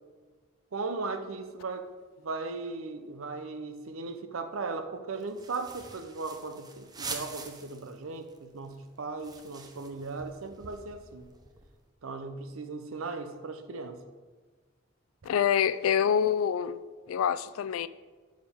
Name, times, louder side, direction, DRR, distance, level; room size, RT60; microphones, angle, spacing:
voice 1, 0.7-1.9 2.2-11.3 12.0-14.0, right 3 dB, 80° right, 0.7 m, -37 dB
sound 1, 5.2-8.0 8.3-8.4 8.6-11.8, right 4 dB, 20° right, 0.6 m, -44 dB
voice 2, 15.2-16.8 17.1-17.9, left 8 dB, 85° left, 0.3 m, -26 dB
11.0 x 5.1 x 3.6 m
head